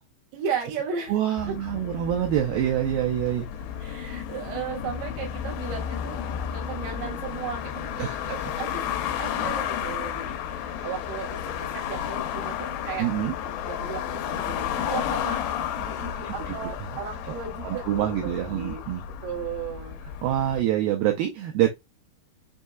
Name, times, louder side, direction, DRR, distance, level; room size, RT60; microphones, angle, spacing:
voice 1, 0.3-1.1 1.5-1.6 1.9-2.0 3.8-6.2 6.5-13.1 13.4-18.9 19.2-20.0, right 7 dB, 60° right, 1.7 m, -36 dB
voice 2, 1.1-3.7 8.0-8.2 13.0-13.3 16.2-16.7 17.3-17.4 17.6-19.0 20.2-21.7, right 12 dB, 85° right, 2.0 m, -26 dB
sound 1, 1.4-20.6, left 9 dB, 85° left, 2.7 m, -32 dB
6.3 x 2.7 x 2.3 m
omnidirectional pair, 4.8 m